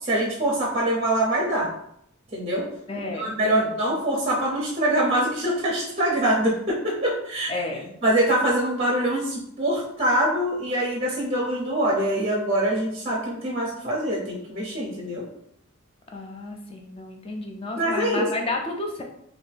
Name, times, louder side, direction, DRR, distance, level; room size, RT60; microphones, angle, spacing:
voice 1, 0.0-1.7 2.3-2.7 3.0-7.5 8.0-15.3 17.7-18.3, right 1 dB, 25° right, -2 dB, 0.5 m, -24 dB
voice 2, 2.9-3.8 7.5-8.0 16.1-19.0, left 2 dB, 25° left, 2 dB, 0.4 m, -31 dB
2.6 x 2.5 x 3.3 m, 0.73 s
head